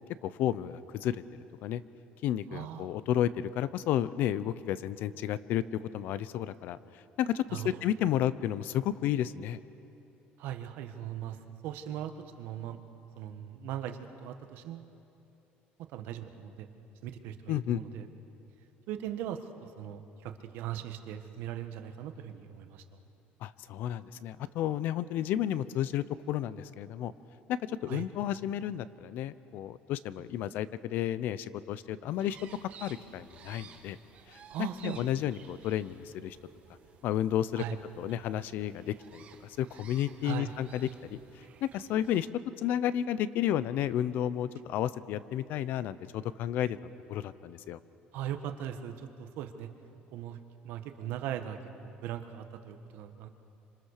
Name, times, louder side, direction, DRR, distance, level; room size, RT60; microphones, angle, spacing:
voice 1, 0.2-1.2 1.6-1.8 2.2-5.6 5.9-9.6 17.5-17.8 23.4-27.1 27.5-34.0 34.3-36.4 37.0-37.6 38.0-41.2 41.6-42.3 42.6-46.8 47.1-47.8, left 11 dB, 60° left, 16 dB, 0.7 m, -32 dB
voice 2, 2.5-2.9 7.5-7.8 10.4-11.4 11.6-12.8 13.2-14.9 15.9-16.7 17.0-18.1 18.9-22.8 27.9-28.0 34.5-35.0 37.6-37.8 40.2-40.5 48.1-49.7 50.1-53.3, right 10 dB, 70° right, 8 dB, 1.4 m, -39 dB
sound 1, 32.1-42.3, right 7 dB, 40° right, 1.8 m, -55 dB
27.0 x 26.0 x 6.6 m, 3.0 s
cardioid pair, 170°, 4 cm